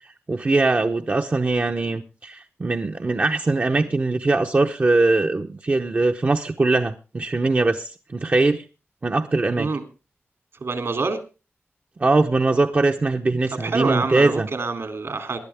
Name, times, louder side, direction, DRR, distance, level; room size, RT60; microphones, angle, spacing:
voice 1, 0.3-8.6 9.0-9.7 12.0-14.5, right 3 dB, 35° right, 4 dB, 0.8 m, -21 dB
voice 2, 10.6-11.2 13.6-15.4, right 3 dB, 70° right, 7 dB, 2.8 m, -26 dB
20.0 x 11.5 x 3.5 m, 0.32 s
wide cardioid pair, 125°, 5 cm